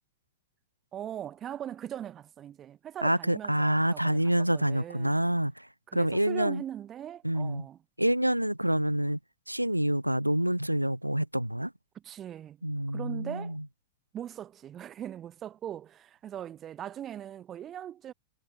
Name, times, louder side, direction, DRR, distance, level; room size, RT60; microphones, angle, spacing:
voice 1, 0.9-5.2 5.9-7.8 11.9-12.6 12.9-13.6 14.1-18.1, right 10 dB, 30° right, 5.7 m, -40 dB
voice 2, 3.0-5.7 5.9-6.6 7.2-7.6 8.0-9.2 9.5-11.7 12.6-13.6, right 1 dB, 90° right, 6.0 m, -27 dB
figure-of-eight pair, 90°, 0 cm